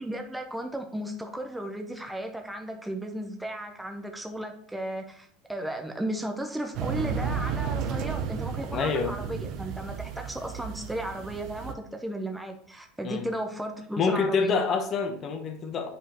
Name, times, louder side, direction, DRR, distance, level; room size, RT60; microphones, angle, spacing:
voice 1, 0.0-14.6, right 1 dB, 5° right, 0.6 m, -35 dB
sound 1, 6.7-11.7, right 6 dB, 50° right, 0.6 m, -33 dB
voice 2, 8.7-9.1 13.0-13.2 14.0-15.9, left 5 dB, 35° left, 0.9 m, -26 dB
7.7 x 5.2 x 3.0 m
supercardioid pair, 145°, 0 cm